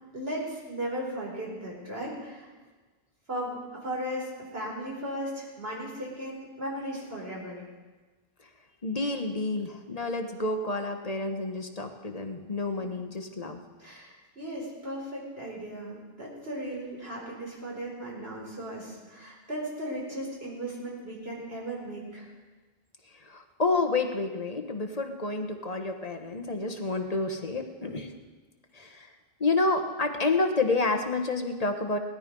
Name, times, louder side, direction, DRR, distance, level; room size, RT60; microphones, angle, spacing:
voice 1, 0.1-2.5 3.3-7.6 13.8-22.3, right 1 dB, 75° right, -3 dB, 4.7 m, -36 dB
voice 2, 8.8-13.6 23.1-28.1 28.7-29.1 29.4-32.0, left 3 dB, 40° left, 5 dB, 1.3 m, -29 dB
17.5 x 13.0 x 5.4 m, 1.3 s
omnidirectional pair, 1.0 m